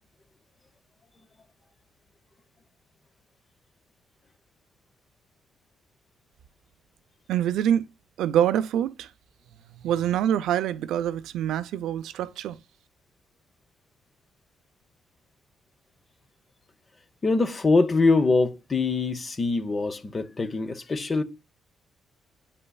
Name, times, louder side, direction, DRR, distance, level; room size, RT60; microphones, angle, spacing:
voice 1, 7.3-7.8 8.2-9.1 9.8-12.6, right 10 dB, 85° right, 0.5 m, -25 dB
voice 2, 17.2-21.2, left 3 dB, 30° left, 0.9 m, -23 dB
8.4 x 5.4 x 2.3 m
cardioid pair, 90°, 0 cm